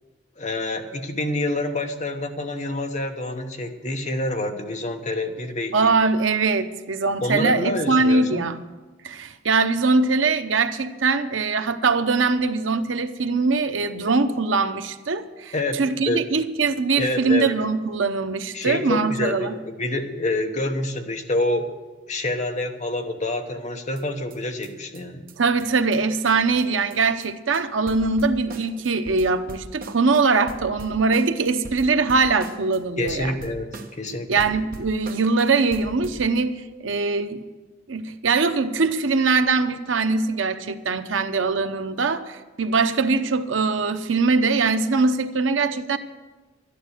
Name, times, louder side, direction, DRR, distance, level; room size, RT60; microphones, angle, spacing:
voice 1, 0.4-5.9 7.2-8.5 15.5-15.8 16.1-16.2 17.0-17.5 18.5-21.8 22.1-25.2 33.0-34.5, left 2 dB, 40° left, 5 dB, 1.1 m, -27 dB
voice 2, 5.7-8.6 9.0-19.6 25.4-33.3 34.3-37.4 37.9-46.0, right 4 dB, 90° right, 9 dB, 0.8 m, -22 dB
sound 1, 24.0-24.1 24.3-24.4 24.6-24.7 24.9-25.0 25.3-25.4 25.6-25.7 25.9-26.0 26.2-26.3 26.6-26.7 26.9-27.3 27.5-27.6 27.9-30.2 30.5-32.8 33.1-34.1 34.4-35.4 35.7-36.3, right 1 dB, 50° right, 1.2 m, -40 dB
12.0 x 11.5 x 6.6 m, 1.2 s
head